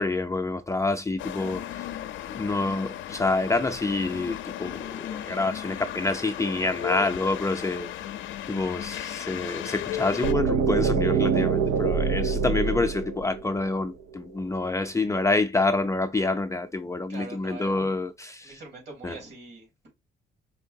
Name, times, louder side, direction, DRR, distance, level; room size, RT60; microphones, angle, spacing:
voice 1, 0.0-1.9 2.3-7.9 8.5-18.6 19.0-19.2, left 3 dB, 15° left, 0.4 m, -27 dB
sound 1, 1.2-10.3, left 11 dB, 75° left, 0.5 m, -35 dB
sound 2, 10.2-14.1, right 6 dB, 85° right, 0.6 m, -25 dB
voice 2, 17.1-18.1 18.4-19.9, right 3 dB, 65° right, 3.1 m, -43 dB
4.6 x 3.2 x 2.6 m
cardioid pair, 90°, 20 cm